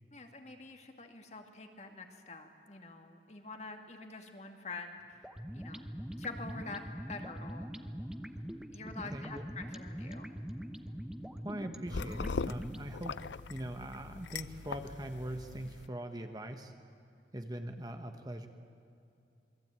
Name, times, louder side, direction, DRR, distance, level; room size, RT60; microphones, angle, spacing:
voice 1, 0.1-5.8 6.1-6.8 7.1-7.7 8.7-10.3, left 3 dB, 40° left, 4 dB, 2.3 m, -46 dB
sound 1, 5.2-12.9, equal, 5° right, 0.9 m, -43 dB
voice 2, 9.1-9.5 11.4-16.7 17.3-18.5, right 1 dB, 20° right, 6 dB, 1.3 m, -42 dB
sound 2, 11.9-15.9, left 4 dB, 90° left, 0.6 m, -40 dB
27.5 x 22.0 x 9.1 m, 2.6 s
head